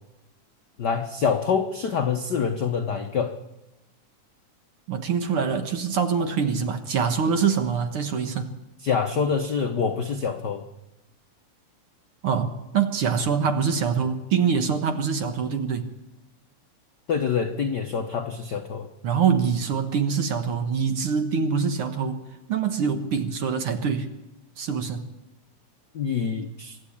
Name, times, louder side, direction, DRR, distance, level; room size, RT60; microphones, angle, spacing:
voice 1, 0.8-3.3 8.8-10.6 17.1-18.9 25.9-26.8, left 6 dB, 75° left, 6 dB, 0.9 m, -26 dB
voice 2, 4.9-8.5 12.2-15.9 19.0-22.2 22.5-24.1 24.6-25.1, right 6 dB, 55° right, 7 dB, 1.8 m, -24 dB
24.5 x 12.0 x 8.7 m, 0.97 s
omnidirectional pair, 3.4 m